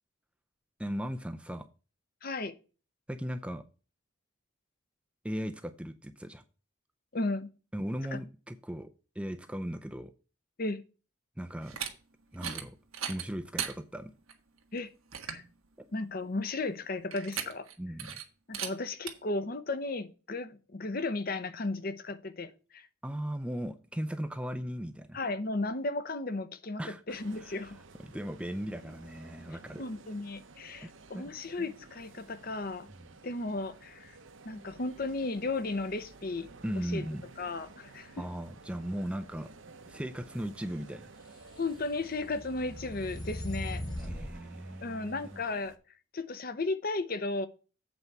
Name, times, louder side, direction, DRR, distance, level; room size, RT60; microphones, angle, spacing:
voice 1, 0.8-1.7 3.1-3.6 5.2-6.4 7.7-10.1 11.4-11.8 12.3-12.8 13.1-14.1 15.8-15.9 17.8-18.2 23.0-25.2 26.8-27.7 28.0-29.8 30.8-31.3 36.6-37.2 38.2-39.5 39.9-41.1 44.0-45.4, equal, 5° right, 0.4 m, -37 dB
voice 2, 2.2-2.6 7.1-7.5 8.1-8.2 10.6-10.8 14.7-14.9 15.3-15.4 15.9-17.7 18.5-22.9 25.1-27.8 29.8-32.9 33.2-34.2 34.4-36.5 36.9-37.0 37.4-38.2 41.6-43.8 44.8-45.7 46.1-47.5, left 2 dB, 45° left, 0.7 m, -35 dB
sound 1, 11.6-11.9 12.3-12.6 12.9-13.7 14.3-14.4 14.8-14.9 15.1-15.4 17.1-17.7 18.0-18.2 18.5-18.7 19.1-19.2, right 8 dB, 90° right, 1.4 m, -36 dB
sound 2, 27.1-45.8, right 3 dB, 70° right, 0.9 m, -53 dB
sound 3, 41.4-44.4, left 1 dB, 20° left, 1.3 m, -39 dB
8.0 x 4.6 x 6.7 m
head